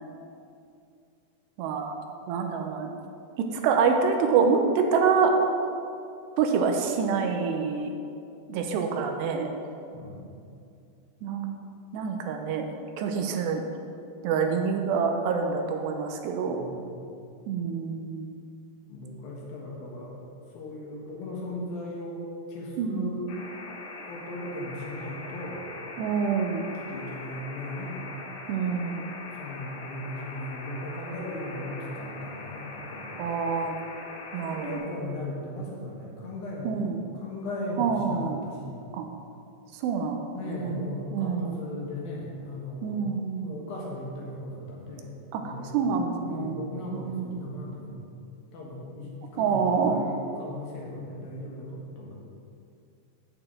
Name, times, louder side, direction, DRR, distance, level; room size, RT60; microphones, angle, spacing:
voice 1, 1.6-2.0 2.3-2.9 3.4-5.3 6.4-7.9 8.5-9.5 11.2-11.5 11.9-12.7 13.0-13.6 14.2-16.6 17.5-18.3 22.8-23.1 26.0-26.7 28.5-29.1 33.2-33.8 34.3-34.8 36.6-37.0 37.8-38.4 38.9-39.1 39.8-40.2 40.6-40.8 41.1-41.5 42.8-43.4 45.3-46.5 46.9-47.5 49.4-50.0, right 5 dB, 85° right, 4 dB, 2.8 m, -26 dB
voice 2, 9.9-10.6 16.5-17.3 18.9-20.1 20.5-22.2 22.5-23.4 24.0-25.7 26.6-28.1 29.3-33.6 34.5-36.8 37.1-38.8 40.3-43.0 43.4-45.1 45.4-45.8 46.2-48.0 48.5-52.2, left 1 dB, 65° left, -3 dB, 2.8 m, -37 dB
sound 1, 23.3-34.8, left 3 dB, 85° left, 3.7 m, -41 dB
8.9 x 8.8 x 3.7 m, 2.5 s
omnidirectional pair, 4.9 m